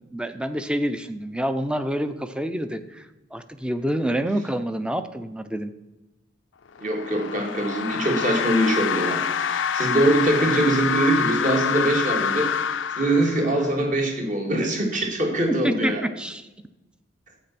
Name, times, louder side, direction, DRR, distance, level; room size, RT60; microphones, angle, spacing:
voice 1, 0.1-5.7 15.5-16.5, right 1 dB, 5° right, 10 dB, 0.7 m, -27 dB
sound 1, 6.8-13.8, left 7 dB, 80° left, 0.6 m, -26 dB
voice 2, 6.8-16.0, right 1 dB, 40° right, 2 dB, 2.3 m, -23 dB
12.5 x 8.7 x 5.9 m, 1.0 s
head